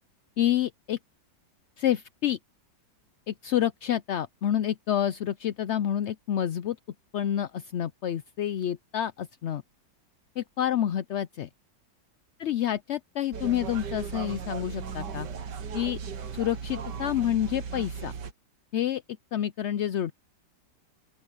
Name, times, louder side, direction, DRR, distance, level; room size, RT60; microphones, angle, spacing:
voice 1, 0.4-1.0 1.8-2.4 3.3-6.8 7.1-9.6 10.4-11.5 12.4-15.3 15.7-16.0 16.3-18.1 18.7-19.0 19.3-20.1, left 11 dB, 70° left, 0.6 m, -28 dB
sound 1, 13.3-18.3, right 6 dB, 90° right, 1.9 m, -36 dB
open air
omnidirectional pair, 1.8 m